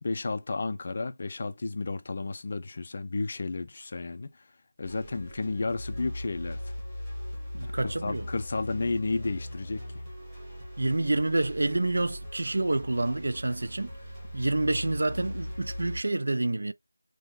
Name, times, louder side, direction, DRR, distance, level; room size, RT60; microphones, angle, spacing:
voice 1, 0.0-4.3 4.8-6.6 7.8-9.8, left 3 dB, 30° left, 0.3 m, -32 dB
sound 1, 4.8-16.0, left 1 dB, 10° right, 1.2 m, -39 dB
voice 2, 7.5-8.3 10.8-13.9 14.3-16.7, right 2 dB, 50° right, 0.3 m, -28 dB
3.6 x 2.7 x 2.2 m
figure-of-eight pair, 165°, 0 cm